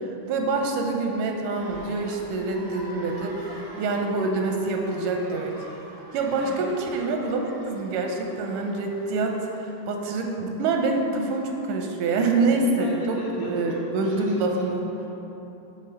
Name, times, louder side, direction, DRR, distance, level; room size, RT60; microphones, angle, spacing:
voice 1, 0.3-3.5 3.8-5.5 6.1-14.9, right 3 dB, 85° right, 2 dB, 2.2 m, -26 dB
sound 1, 1.5-9.8, equal, 25° right, 0.7 m, -45 dB
voice 2, 6.4-6.7 12.8-15.1, left 3 dB, 80° left, -3 dB, 1.6 m, -39 dB
7.4 x 3.8 x 6.6 m, 3.0 s
omnidirectional pair, 3.7 m